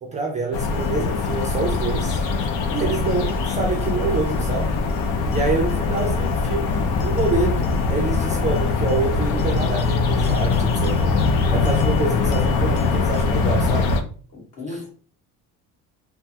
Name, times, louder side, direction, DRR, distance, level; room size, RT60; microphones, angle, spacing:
voice 1, 0.0-2.2 2.7-4.8 5.3-11.1 11.5-14.0 14.7-14.8, right 3 dB, 20° right, 0.4 m, -26 dB
sound 1, 0.5-14.0, left 4 dB, 80° left, 0.6 m, -22 dB
voice 2, 14.3-14.9, left 2 dB, 45° left, 1.4 m, -36 dB
3.4 x 2.0 x 2.7 m
cardioid pair, 155°, 34 cm